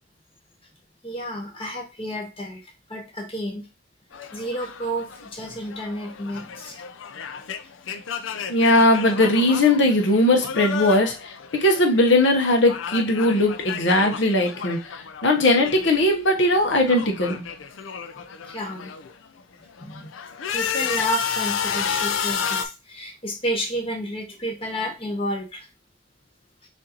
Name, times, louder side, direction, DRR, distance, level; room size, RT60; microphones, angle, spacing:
voice 1, 1.0-3.7 4.3-6.8 18.5-18.9 19.8-20.1 20.5-25.7, right 1 dB, 30° left, 0.9 m, -31 dB
sound 1, 4.1-12.1 12.4-16.2 16.4-19.1 19.6-22.7, left 7 dB, 85° left, 0.5 m, -32 dB
voice 2, 8.5-14.9 15.2-17.4, left 1 dB, 65° left, 1.0 m, -19 dB
6.2 x 2.6 x 2.9 m
head